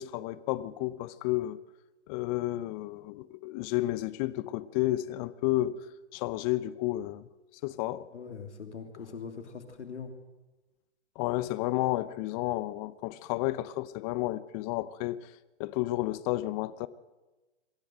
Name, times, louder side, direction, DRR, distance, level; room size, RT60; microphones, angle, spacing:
voice 1, 0.0-1.6 2.1-5.8 6.1-7.3 7.6-8.1 11.2-15.3 15.6-16.9, left 16 dB, 30° left, 0.8 m, -31 dB
voice 2, 8.1-10.1, left 5 dB, 75° left, 3.0 m, -42 dB
23.0 x 15.5 x 7.8 m
hypercardioid pair, 120°, 35 cm